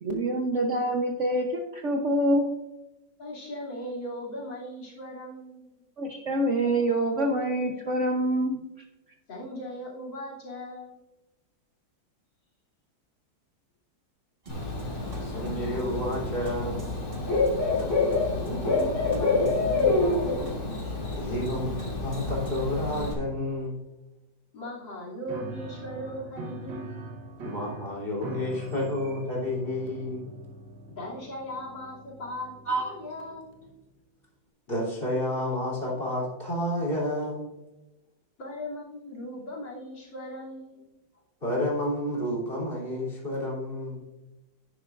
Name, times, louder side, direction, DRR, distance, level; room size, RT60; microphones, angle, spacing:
voice 1, 0.0-2.4 6.0-8.6, right 1 dB, 50° right, 2 dB, 1.0 m, -26 dB
voice 2, 3.2-5.7 9.3-10.9 18.3-20.9 24.5-27.1 31.0-33.5 38.4-40.9, equal, 75° left, -5 dB, 3.5 m, -38 dB
sound 1, 14.4-22.6, right 1 dB, 30° right, 1.5 m, -45 dB
Bird / Cricket, 14.5-23.1, left 3 dB, 55° left, 3.3 m, -27 dB
voice 3, 15.2-16.9 17.9-18.0 21.2-23.8 27.4-30.2 32.7-32.9 34.7-37.5 41.4-44.0, left 1 dB, 30° left, -5 dB, 3.5 m, -30 dB
Piano, 25.3-33.7, right 1 dB, 75° right, 1.8 m, -42 dB
10.0 x 9.9 x 2.5 m, 0.99 s
omnidirectional pair, 2.0 m